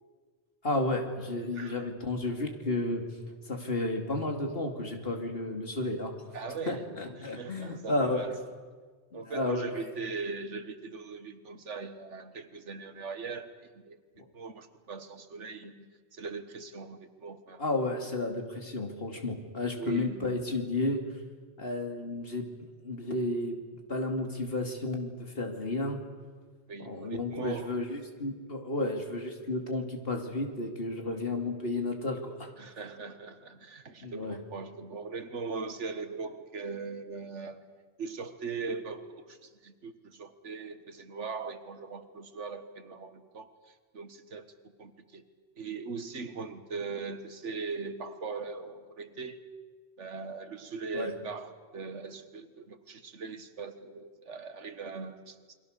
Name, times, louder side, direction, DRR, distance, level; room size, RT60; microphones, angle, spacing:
voice 1, 0.6-3.0 3.5-6.1 6.7-8.2 9.1-9.8 17.6-21.0 21.6-22.4 22.8-23.6 23.9-26.0 26.8-32.5 34.0-34.4 50.9-51.1, left 2 dB, 55° left, 3 dB, 3.0 m, -32 dB
voice 2, 1.5-1.9 6.3-8.4 9.1-14.0 14.3-17.6 19.8-20.4 26.7-27.8 31.0-31.2 32.6-37.6 38.0-44.5 44.8-45.2 45.6-49.4 50.0-55.4, right 4 dB, 90° right, 10 dB, 1.8 m, -40 dB
28.5 x 23.5 x 6.7 m, 1.5 s
omnidirectional pair, 1.2 m